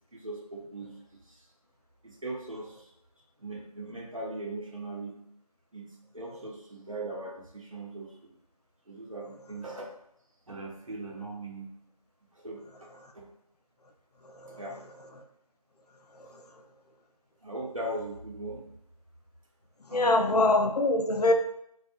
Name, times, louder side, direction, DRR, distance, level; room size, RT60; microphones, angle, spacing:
voice 1, 0.1-1.0 1.3-1.4 2.0-2.9 3.4-5.2 5.7-8.4 8.9-9.9 10.5-11.7 12.3-12.9 13.1-13.3 14.6-14.8 17.4-18.7 19.9-20.3, right 2 dB, 60° right, -2 dB, 0.7 m, -39 dB
voice 2, 14.2-14.6 16.2-16.4 19.9-21.3, left 2 dB, 85° left, 4 dB, 0.5 m, -24 dB
2.7 x 2.3 x 2.4 m, 0.74 s
figure-of-eight pair, 180°, 19 cm